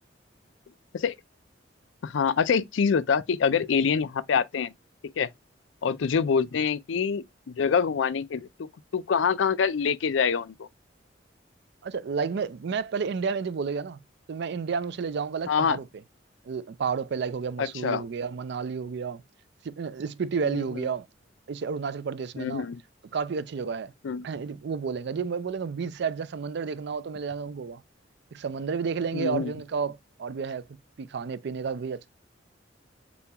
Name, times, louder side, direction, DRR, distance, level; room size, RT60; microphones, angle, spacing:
voice 1, 2.0-4.7 5.2-5.3 5.8-7.2 7.5-10.7 15.5-15.8 17.6-18.0 20.5-20.6 22.4-22.8 24.0-24.2 29.1-29.5, left 6 dB, 80° left, 0.4 m, -25 dB
voice 2, 11.8-14.0 14.3-15.9 16.4-19.2 19.6-21.1 21.5-22.7 23.1-23.9 24.2-27.8 28.3-30.6 31.0-32.1, right 5 dB, 65° right, 0.4 m, -31 dB
6.8 x 2.3 x 2.9 m
head